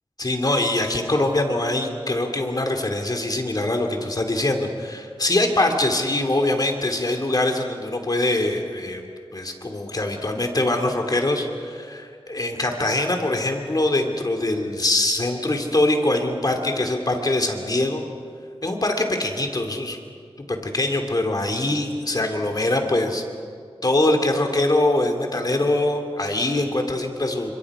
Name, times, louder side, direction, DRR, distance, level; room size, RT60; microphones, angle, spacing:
voice 1, 0.2-18.0 18.6-20.0 20.4-23.2 23.8-27.5, left 2 dB, 40° left, 4 dB, 2.6 m, -23 dB
30.0 x 25.5 x 4.9 m, 2.2 s
wide cardioid pair, 85°, 10 cm